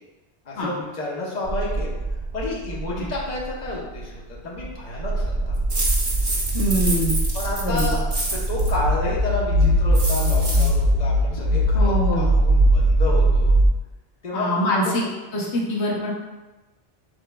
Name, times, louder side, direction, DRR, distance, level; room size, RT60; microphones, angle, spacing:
voice 1, 0.4-1.9 2.3-4.1 4.4-5.8 7.3-13.6 14.2-14.5 14.7-14.9, left 2 dB, 45° left, -5 dB, 1.1 m, -30 dB
sound 1, 1.5-4.0 4.3-4.4 4.6-4.7 4.9-13.7, right 1 dB, 55° right, 1.0 m, -21 dB
sound 2, 5.7-8.7 9.9-10.7, right 2 dB, 25° right, 0.7 m, -28 dB
voice 2, 6.5-7.2 7.6-8.0 11.7-12.3 14.3-15.0 15.3-16.1, equal, 85° left, -3 dB, 1.2 m, -24 dB
5.7 x 3.7 x 2.3 m, 1.1 s
omnidirectional pair, 1.1 m